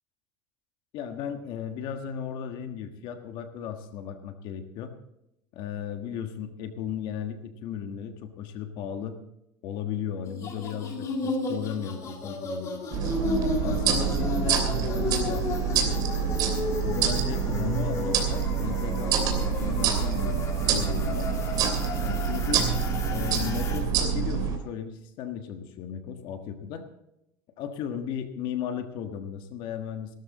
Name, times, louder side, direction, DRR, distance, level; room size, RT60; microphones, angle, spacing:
voice 1, 0.9-4.9 5.5-9.2 9.6-13.0 13.6-16.0 16.8-20.4 20.7-21.3 22.0-22.7 23.1-26.8 27.6-30.2, left 8 dB, 50° left, 6 dB, 1.4 m, -35 dB
sound 1, 10.2-23.8, left 3 dB, 30° left, 2.1 m, -34 dB
sound 2, 12.9-24.6, right 7 dB, 40° right, 3.0 m, -26 dB
17.0 x 12.5 x 4.1 m, 0.83 s
cardioid pair, 160°, 10 cm